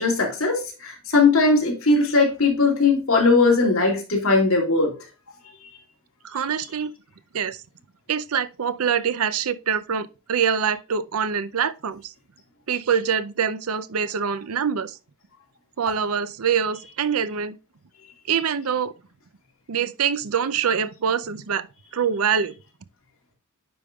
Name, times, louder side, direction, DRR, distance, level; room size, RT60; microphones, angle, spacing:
voice 1, 0.0-4.9, left 3 dB, 70° left, 2.8 m, -19 dB
voice 2, 6.2-6.9 7.3-7.6 8.1-12.1 12.7-15.0 15.8-17.6 18.3-18.9 19.7-21.7 21.9-22.5, right 7 dB, 85° right, 0.6 m, -24 dB
9.5 x 5.2 x 2.3 m
head